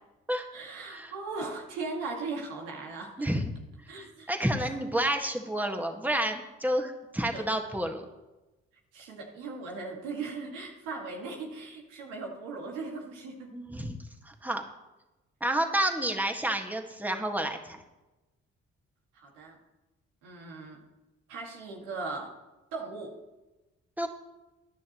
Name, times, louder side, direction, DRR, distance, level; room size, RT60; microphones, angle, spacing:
voice 1, 0.5-3.3 3.9-4.3 7.3-7.4 8.9-13.5 19.1-19.6 20.2-20.8 21.3-22.4 22.7-23.1, right 3 dB, 85° right, 0 dB, 2.0 m, -38 dB
voice 2, 3.2-3.5 4.0-8.0 13.5-14.0 14.3-14.6 15.4-17.8 24.0-24.1, right 1 dB, 5° right, 3 dB, 1.7 m, -30 dB
14.5 x 10.5 x 3.1 m, 1.0 s
hypercardioid pair, 50°, 32 cm